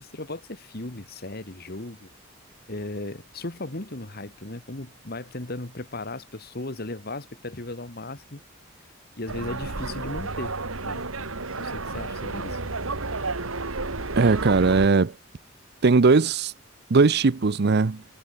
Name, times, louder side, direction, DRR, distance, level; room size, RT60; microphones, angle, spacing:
voice 1, 0.0-2.1 2.7-8.4 9.2-10.5 10.8-11.0 11.6-12.6, left 2 dB, 50° left, 2.0 m, -36 dB
sound 1, 9.3-14.9, right 3 dB, 85° right, 2.4 m, -31 dB
voice 2, 14.2-15.1 15.8-16.5 16.9-18.0, right 4 dB, 55° right, 0.6 m, -19 dB
head